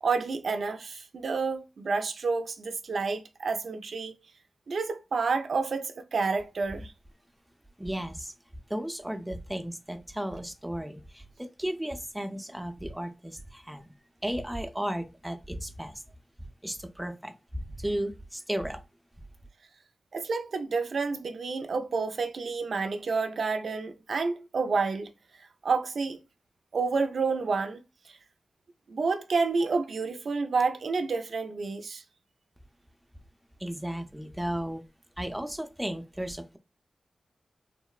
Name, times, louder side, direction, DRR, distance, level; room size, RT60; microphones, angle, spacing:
voice 1, 0.0-4.1 4.7-6.9 20.1-25.1 25.6-26.2 26.7-27.8 28.1-28.2 28.9-32.0, right 4 dB, 75° right, 0.4 m, -29 dB
voice 2, 7.8-8.3 8.7-13.9 14.2-16.0 16.6-18.8 33.6-34.8 35.2-36.6, right 1 dB, 10° right, 0.5 m, -34 dB
3.1 x 2.0 x 2.3 m
cardioid pair, 40°, 0 cm